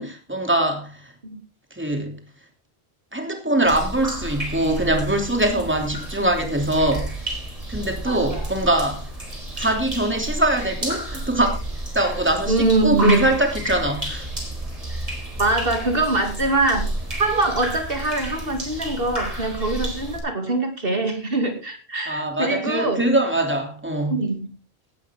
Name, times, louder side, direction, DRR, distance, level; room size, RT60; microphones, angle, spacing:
voice 1, 0.0-1.1 1.7-2.2 3.1-7.1 7.7-9.0 9.6-11.6 11.9-14.3 22.1-24.2, right 1 dB, 10° right, 4 dB, 3.0 m, -22 dB
sound 1, 3.6-20.2, right 1 dB, 35° right, 4.5 m, -31 dB
voice 2, 8.1-8.5 12.5-13.3 15.4-16.8 17.2-23.0 24.1-24.5, right 2 dB, 60° right, 4 dB, 2.8 m, -23 dB
17.0 x 12.0 x 3.7 m, 0.32 s
omnidirectional pair, 1.1 m